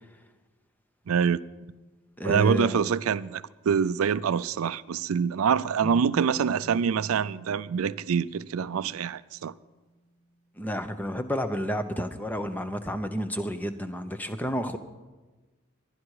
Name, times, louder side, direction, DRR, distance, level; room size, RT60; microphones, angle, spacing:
voice 1, 1.1-1.4 2.2-9.5, right 7 dB, 80° right, 0.4 m, -25 dB
voice 2, 2.2-2.9 10.6-14.8, equal, 10° left, 0.7 m, -31 dB
sound 1, 9.3-9.8, equal, 70° left, 1.5 m, -46 dB
22.0 x 11.0 x 4.8 m
head